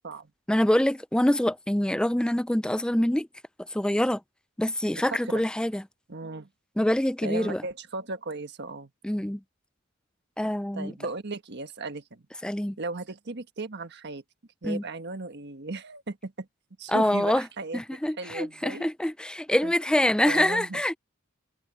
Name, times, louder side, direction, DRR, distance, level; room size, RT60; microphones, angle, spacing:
voice 1, 0.5-3.3 3.7-4.2 4.6-5.8 6.8-7.6 9.0-9.4 10.4-10.9 12.4-12.8 14.6-14.8 16.9-17.5 17.7-21.0, left 1 dB, 5° left, 0.4 m, -25 dB
voice 2, 4.9-5.4 6.1-6.5 7.2-8.9 10.7-12.2 12.8-14.2 14.6-16.5 16.8-18.9 19.6-19.7 20.3-21.0, right 3 dB, 55° right, 1.4 m, -36 dB
head